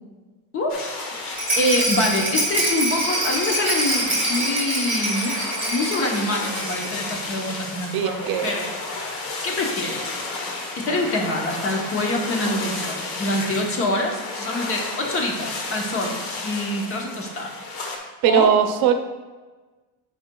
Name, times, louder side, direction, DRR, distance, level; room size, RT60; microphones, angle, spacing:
voice 1, 0.5-1.1 1.6-5.4 5.7-8.7 9.2-10.1 10.8-16.2 16.4-17.5 18.3-18.5, left 1 dB, 35° left, 1 dB, 0.8 m, -25 dB
sound 1, 0.7-18.0, left 3 dB, 65° left, 1.2 m, -32 dB
Rattle, 1.4-7.1 7.3-7.4 7.7-7.8, right 1 dB, 5° right, 1.6 m, -25 dB
voice 2, 7.9-8.5 10.9-11.0 18.2-18.9, right 9 dB, 75° right, 7 dB, 0.6 m, -19 dB
9.2 x 5.1 x 2.2 m, 1.3 s
cardioid pair, 175°, 36 cm